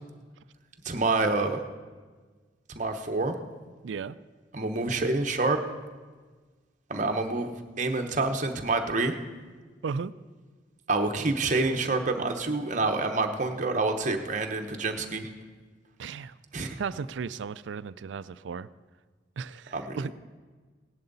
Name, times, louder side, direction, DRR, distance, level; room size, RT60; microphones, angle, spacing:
voice 1, 0.8-1.6 2.7-3.3 4.5-5.6 6.9-9.1 10.9-15.3 16.5-16.8 19.7-20.1, right 3 dB, 40° right, 5 dB, 0.9 m, -27 dB
voice 2, 3.8-4.2 9.8-10.1 16.0-16.3 16.8-18.7 19.4-20.1, right 5 dB, 80° right, 17 dB, 0.4 m, -35 dB
17.0 x 10.5 x 4.0 m, 1.4 s
head